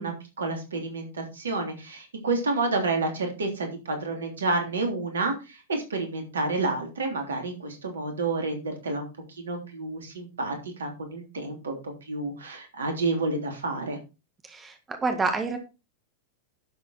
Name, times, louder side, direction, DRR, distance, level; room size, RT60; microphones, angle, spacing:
voice 1, 0.0-9.1 9.4-14.0, right 3 dB, 70° right, 4 dB, 3.3 m, -30 dB
voice 2, 14.5-15.6, right 3 dB, 15° right, 6 dB, 1.8 m, -28 dB
11.5 x 7.4 x 4.2 m, 0.29 s
figure-of-eight pair, 90°, 0 cm